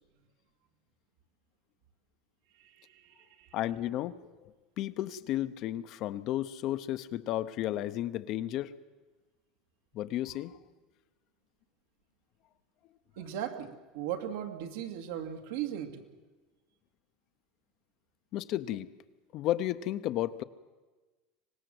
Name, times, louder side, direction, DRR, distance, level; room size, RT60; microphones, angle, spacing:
voice 1, 2.5-3.5 13.2-16.1, right 10 dB, 75° right, 5 dB, 2.3 m, -38 dB
voice 2, 3.5-4.5 4.8-8.7 9.9-10.6 18.3-18.9 19.3-20.4, left 13 dB, 40° left, 13 dB, 0.7 m, -33 dB
24.5 x 19.5 x 7.9 m, 1.2 s
cardioid pair, 180°, 0 cm